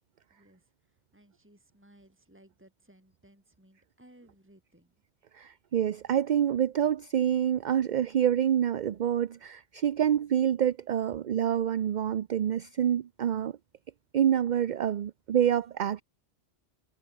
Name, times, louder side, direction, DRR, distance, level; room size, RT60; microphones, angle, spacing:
voice 1, 0.3-4.9, right 1 dB, 10° right, 4.1 m, -60 dB
voice 2, 5.3-13.5 14.1-16.0, right 9 dB, 50° right, 0.6 m, -27 dB
omnidirectional pair, 1.2 m